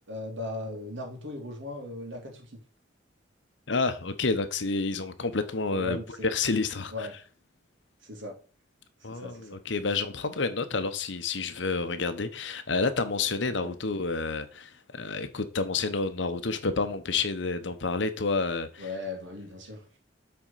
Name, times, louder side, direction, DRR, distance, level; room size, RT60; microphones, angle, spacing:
voice 1, 0.1-2.6 5.7-6.3 6.9-7.1 8.0-8.4 9.0-9.5 13.5-13.7 18.8-19.9, left 2 dB, 85° right, 2.7 m, -38 dB
voice 2, 3.7-6.0 6.2-6.9 9.0-18.9, left 4 dB, 75° left, 1.0 m, -29 dB
7.7 x 4.4 x 5.6 m
head